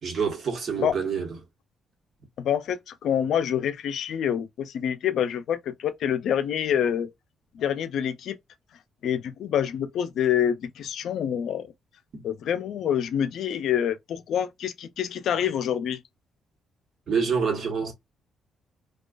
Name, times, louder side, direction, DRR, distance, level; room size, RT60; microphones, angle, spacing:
voice 1, 0.0-1.3 12.1-12.2 17.1-17.9, right 6 dB, 55° right, 1.0 m, -27 dB
voice 2, 2.4-7.1 7.5-8.4 9.0-11.7 12.2-16.0, left 9 dB, 70° left, 0.4 m, -26 dB
2.4 x 2.3 x 2.2 m
cardioid pair, 90°, 0 cm